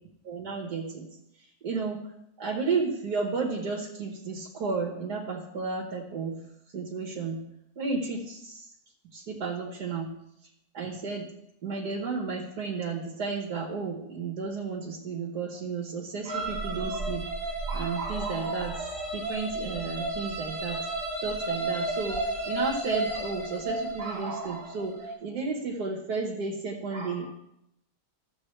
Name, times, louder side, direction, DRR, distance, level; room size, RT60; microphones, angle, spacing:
voice 1, 0.2-1.1 1.4-2.1 2.4-6.4 6.7-7.4 7.8-8.7 9.1-10.1 10.4-10.5 10.7-11.3 11.6-17.2 17.7-20.8 21.2-27.3, right 4 dB, 65° right, -3 dB, 1.8 m, -32 dB
sound 1, 16.3-25.2, right 2 dB, 20° left, 2.0 m, -33 dB
14.0 x 7.4 x 3.3 m, 0.81 s
omnidirectional pair, 1.8 m